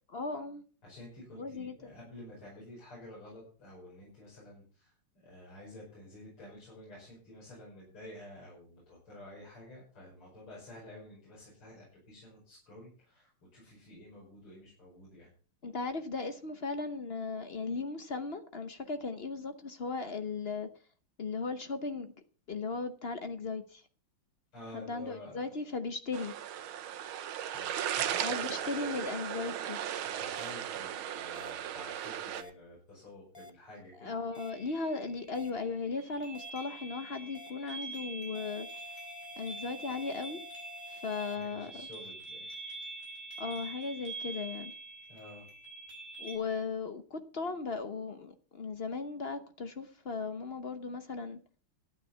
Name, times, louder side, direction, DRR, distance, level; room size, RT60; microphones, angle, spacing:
voice 1, 0.1-0.6 1.4-1.9 15.6-20.7 21.2-22.1 22.5-23.8 24.7-26.3 28.2-29.8 34.0-38.7 39.4-40.4 40.9-41.9 43.4-44.7 46.2-51.4, left 4 dB, 55° left, 9 dB, 0.7 m, -37 dB
voice 2, 0.8-4.9 5.2-15.3 24.5-25.4 27.5-28.9 30.2-34.1 41.4-42.5 45.1-45.5, left 1 dB, 85° left, -5 dB, 6.3 m, -51 dB
sound 1, 26.1-32.4, right 10 dB, 75° right, 1.7 m, -36 dB
sound 2, 30.3-30.5 31.3-31.5 32.3-32.5 33.3-33.5 34.3-34.5 35.3-35.5 36.3-36.5 37.3-37.5 38.3-41.4, left 2 dB, 20° left, 0.8 m, -50 dB
sound 3, 34.3-46.3, right 3 dB, 35° left, 6.0 m, -45 dB
12.5 x 9.2 x 5.6 m, 0.40 s
omnidirectional pair, 2.3 m